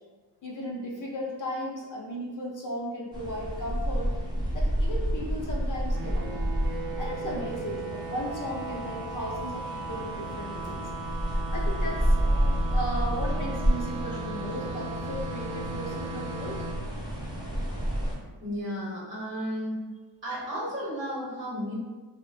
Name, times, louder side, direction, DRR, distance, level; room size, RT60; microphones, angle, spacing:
voice 1, 0.4-4.1 4.5-6.3 7.0-10.8 11.2-12.4 12.7-16.6, equal, 50° left, -2 dB, 0.5 m, -36 dB
sound 1, 3.1-18.2, equal, 10° right, 0.4 m, -30 dB
sound 2, 5.9-16.7, right 3 dB, 60° right, 0.6 m, -37 dB
voice 2, 18.4-19.8 20.2-21.7, equal, 25° right, -6 dB, 0.9 m, -33 dB
2.7 x 2.1 x 2.5 m, 1.3 s
wide cardioid pair, 140°, 43 cm